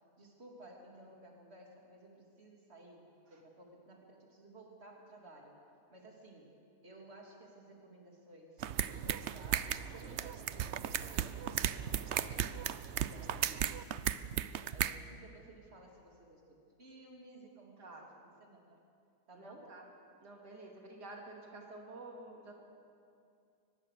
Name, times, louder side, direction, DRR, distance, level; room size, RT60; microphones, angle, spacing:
voice 1, 0.2-5.6 5.9-6.5 6.8-12.7 13.0-14.4 14.7-18.8 19.3-19.7, right 1 dB, 40° right, -1 dB, 3.4 m, -56 dB
sound 1, 8.6-15.0, right 10 dB, 60° right, 0.7 m, -36 dB
voice 2, 19.3-19.8 20.2-22.5, right 2 dB, 90° right, 1 dB, 2.9 m, -50 dB
23.0 x 21.0 x 6.8 m, 2.4 s
omnidirectional pair, 1.7 m